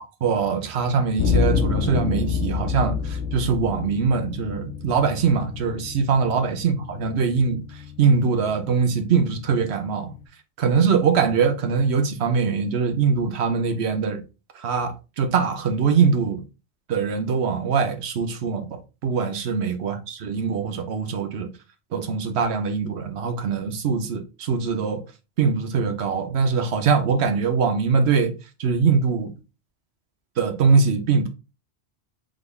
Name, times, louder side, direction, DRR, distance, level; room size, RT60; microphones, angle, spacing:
voice 1, 0.0-10.1 10.6-14.2 14.5-16.4 16.9-21.5 21.9-25.0 25.4-28.3 28.6-29.3 30.4-31.3, right 5 dB, 80° right, 1.0 m, -22 dB
sound 1, 1.2-10.2, left 6 dB, 85° left, 1.0 m, -29 dB
3.8 x 3.7 x 3.4 m
omnidirectional pair, 1.1 m